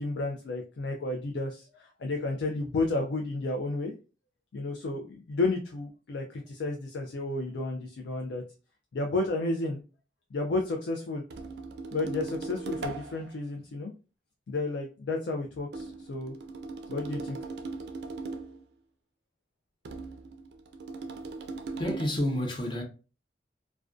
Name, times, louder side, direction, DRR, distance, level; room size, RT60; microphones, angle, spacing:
voice 1, 0.0-3.9 4.5-8.4 8.9-9.8 10.3-11.2 11.9-13.9 14.5-16.3 16.9-17.4, left 2 dB, 80° left, 0.4 m, -32 dB
sound 1, 11.3-13.3 15.7-18.6 19.8-22.1, right 3 dB, 65° right, 0.3 m, -39 dB
voice 2, 21.8-22.8, left 1 dB, 25° left, 0.5 m, -29 dB
2.4 x 2.2 x 2.3 m
head